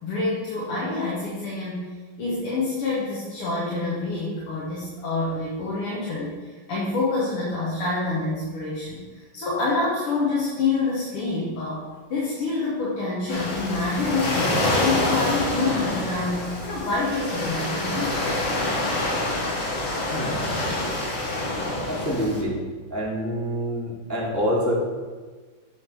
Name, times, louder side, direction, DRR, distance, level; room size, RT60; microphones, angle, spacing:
voice 1, 0.0-9.0 9.3-11.8 12.1-18.1, left 3 dB, 90° left, -6 dB, 2.1 m, -27 dB
Waves surf, 13.3-22.4, left 2 dB, 60° left, 2.0 m, -26 dB
voice 2, 21.9-22.6 22.9-24.7, equal, 10° left, -6 dB, 0.8 m, -26 dB
7.7 x 3.4 x 6.0 m, 1.4 s
omnidirectional pair, 2.4 m